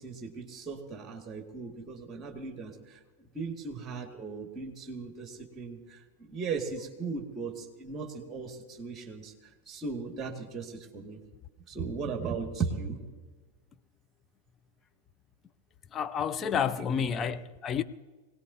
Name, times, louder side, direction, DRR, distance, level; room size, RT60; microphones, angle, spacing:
voice 1, 0.0-9.3 9.7-11.2 11.7-13.0 16.4-17.3, right 4 dB, 25° right, 2.1 m, -37 dB
voice 2, 15.9-17.8, left 7 dB, 25° left, 0.6 m, -30 dB
24.0 x 18.5 x 2.8 m
figure-of-eight pair, 90°, 0 cm